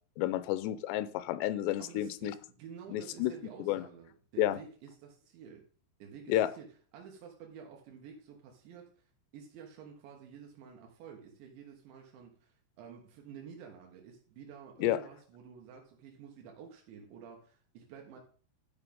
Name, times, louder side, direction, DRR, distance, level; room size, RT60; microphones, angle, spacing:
voice 1, 0.2-2.3 2.9-3.3 3.6-3.9 4.4-4.6 6.3-6.5 14.8-15.0, left 13 dB, 85° left, 15 dB, 2.8 m, -30 dB
voice 2, 1.8-5.7 6.0-6.7 6.9-9.1 9.3-18.2, right 7 dB, 85° right, 1 dB, 3.8 m, -50 dB
11.0 x 6.5 x 5.3 m, 0.42 s
omnidirectional pair, 5.1 m